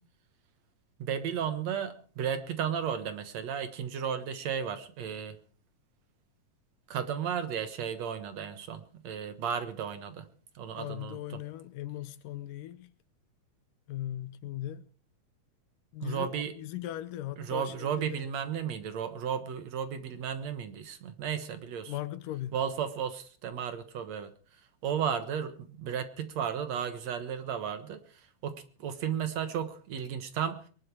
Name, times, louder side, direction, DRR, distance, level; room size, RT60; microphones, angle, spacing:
voice 1, 1.0-5.4 6.9-10.3 10.6-11.4 16.0-16.5 17.4-21.9 22.5-24.3 24.8-28.0 28.4-30.6, right 8 dB, 60° right, 2.3 m, -34 dB
voice 2, 10.7-12.9 13.9-14.8 15.9-18.3 21.9-22.6, left 13 dB, 85° left, 2.7 m, -39 dB
22.0 x 11.5 x 4.7 m
omnidirectional pair, 3.7 m